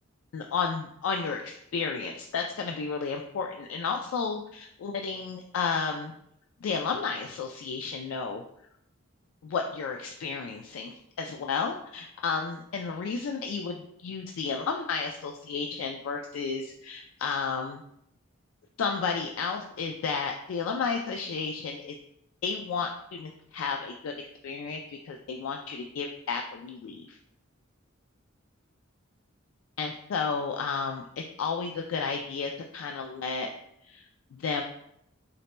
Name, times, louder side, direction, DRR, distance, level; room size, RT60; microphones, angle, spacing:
voice 1, 0.3-6.1 6.6-8.4 9.4-17.8 18.8-22.0 22.4-27.2 29.8-33.5 33.8-34.0 34.3-34.6, left 5 dB, 85° left, 3 dB, 0.3 m, -32 dB
3.9 x 2.1 x 4.2 m, 0.75 s
head